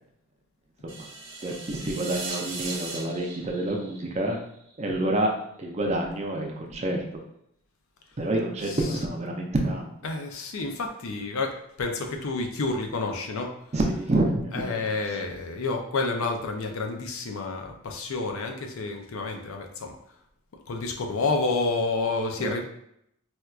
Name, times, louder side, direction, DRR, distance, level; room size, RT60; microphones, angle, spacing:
sound 1, 0.9-5.0, right 3 dB, 70° right, 0.9 m, -38 dB
voice 1, 1.4-4.4 4.8-5.3 5.6-7.0 8.2-9.9 13.7-15.2 22.4-22.6, right 1 dB, 30° right, 1 dB, 0.4 m, -28 dB
voice 2, 8.6-9.0 10.0-13.5 14.5-20.0 20.7-22.6, left 3 dB, 75° left, 4 dB, 0.5 m, -29 dB
4.3 x 2.2 x 2.4 m, 0.74 s
head